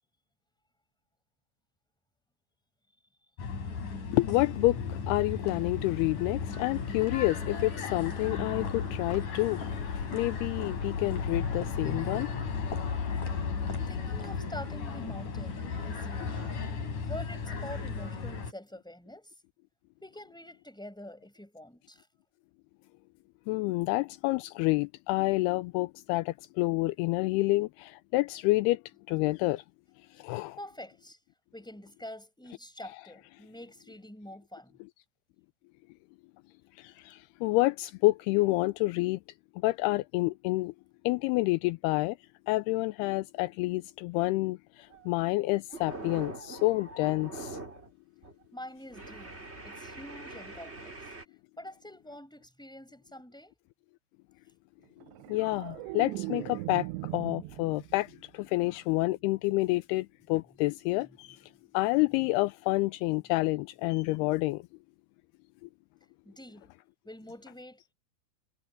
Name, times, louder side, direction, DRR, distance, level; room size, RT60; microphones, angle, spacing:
sound 1, 3.4-18.5, left 5 dB, 45° left, 5.1 m, -35 dB
voice 1, 4.1-13.7 23.5-29.6 30.1-30.6 32.8-32.9 36.8-39.2 39.6-40.7 41.0-42.2 42.5-47.6 55.3-64.6 65.6-65.7, left 20 dB, 85° left, 2.3 m, -29 dB
voice 2, 13.3-16.4 17.0-19.3 20.0-22.1 30.6-31.2 31.5-34.8 48.5-51.1 51.6-53.5 66.2-66.7 67.0-67.9, left 1 dB, ahead, 5.9 m, -46 dB
sound 2, 44.8-45.1 45.4-47.9 48.2-48.5 48.9-51.2, right 2 dB, 15° right, 3.5 m, -43 dB
sound 3, 55.0-58.2 58.5-58.9, right 21 dB, 80° right, 2.8 m, -39 dB
omnidirectional pair, 5.1 m